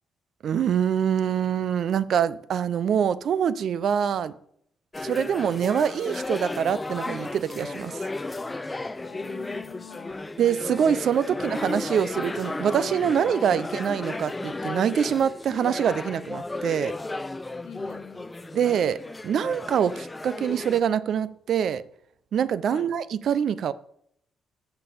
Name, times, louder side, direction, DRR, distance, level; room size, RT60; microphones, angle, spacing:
voice 1, 0.4-4.3 5.0-8.1 10.4-16.9 18.5-19.0 19.2-21.8 22.3-23.7, right 8 dB, 65° right, 17 dB, 0.5 m, -25 dB
sound 1, 4.9-20.8, left 2 dB, 15° left, 0.5 m, -34 dB
voice 2, 8.9-10.2 11.1-11.5 13.5-13.6 17.6-18.3 22.7-22.9, left 8 dB, 70° left, 6 dB, 1.2 m, -44 dB
6.9 x 6.8 x 6.9 m, 0.69 s
cardioid pair, 90°, 0 cm